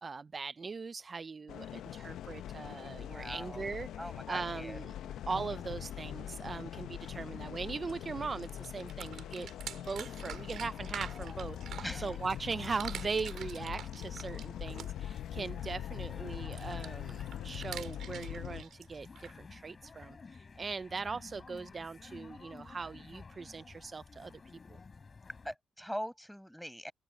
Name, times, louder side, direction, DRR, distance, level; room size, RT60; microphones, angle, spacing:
voice 1, 0.0-3.9 4.3-4.9 5.3-9.5 9.7-24.3 24.7-24.8, right 4 dB, 35° right, 0.4 m, -40 dB
sound 1, 1.5-18.6, left 11 dB, 75° left, 0.7 m, -42 dB
voice 2, 3.0-3.6 4.0-5.4 11.8-12.2 25.4-26.9, equal, ahead, 5.3 m, -43 dB
sound 2, 7.9-8.0 8.2-12.4 12.6-15.1 16.5-19.3, right 9 dB, 65° right, 5.1 m, -46 dB
sound 3, 10.0-25.5, left 4 dB, 35° left, 3.7 m, -52 dB
cardioid pair, 90°, 0 cm